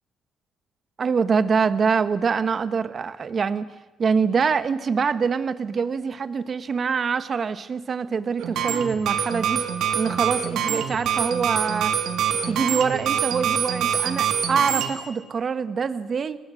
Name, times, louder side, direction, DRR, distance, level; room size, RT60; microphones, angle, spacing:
voice 1, 1.0-3.7 4.0-9.6 9.9-12.0 12.4-16.4, right 5 dB, 45° right, 13 dB, 1.2 m, -24 dB
sound 1, 8.4-14.9, right 8 dB, 80° right, 2.2 m, -25 dB
29.5 x 19.5 x 6.3 m, 1.1 s
cardioid pair, 90°, 0 cm